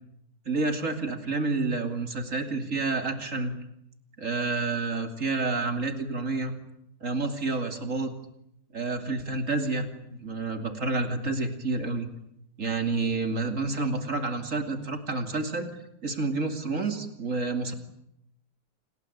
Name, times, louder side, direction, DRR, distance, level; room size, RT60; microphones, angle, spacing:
voice 1, 0.5-3.5 4.2-6.5 7.0-8.1 8.7-12.1 12.6-15.7 16.0-17.7, right 3 dB, 45° right, 7 dB, 3.1 m, -29 dB
28.0 x 20.0 x 9.8 m, 0.79 s
omnidirectional pair, 1.8 m